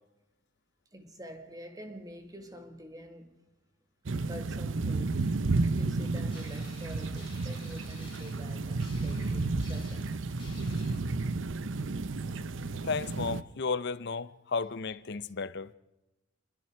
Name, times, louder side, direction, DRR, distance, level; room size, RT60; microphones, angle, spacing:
voice 1, 0.9-3.4 4.3-5.3 5.7-10.5, equal, 20° right, 2.0 m, -47 dB
sound 1, 4.1-13.4, right 3 dB, 75° right, 0.8 m, -32 dB
sound 2, 6.3-11.0, left 5 dB, 25° left, 5.3 m, -54 dB
voice 2, 12.8-15.7, left 4 dB, 60° left, 0.8 m, -33 dB
26.0 x 22.5 x 4.6 m
head